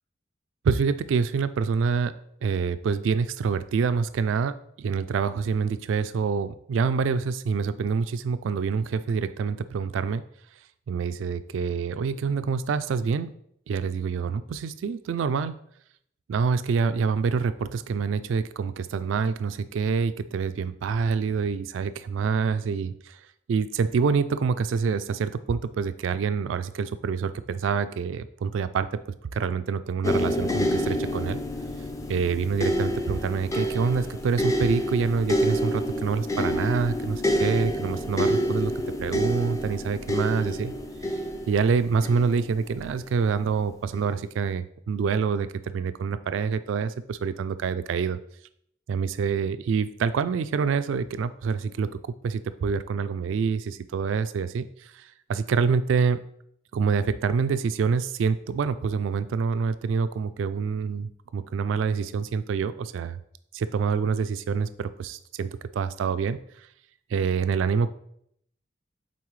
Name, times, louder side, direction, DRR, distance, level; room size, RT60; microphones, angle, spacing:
voice 1, 0.6-2.1 2.4-10.2 10.9-13.3 13.7-15.5 16.3-29.0 29.3-31.4 32.1-38.7 39.0-40.7 41.5-48.2 48.9-56.2 56.7-63.2 63.5-66.7 67.1-67.9, right 5 dB, 85° right, 13 dB, 0.3 m, -26 dB
sound 1, 30.0-43.1 43.9-44.1, equal, 15° left, 0.5 m, -28 dB
8.4 x 4.0 x 3.1 m, 0.70 s
head